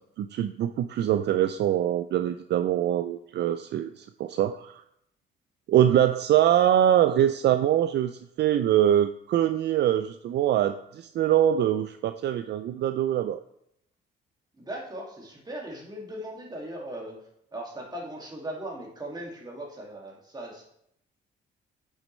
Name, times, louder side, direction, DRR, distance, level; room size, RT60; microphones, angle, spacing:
voice 1, 0.2-4.8 5.7-13.4, right 11 dB, 60° right, 9 dB, 0.4 m, -23 dB
voice 2, 14.5-17.2 17.5-20.6, right 1 dB, 20° right, -2 dB, 2.3 m, -38 dB
8.4 x 6.4 x 3.2 m, 0.75 s
cardioid pair, 90°, 20 cm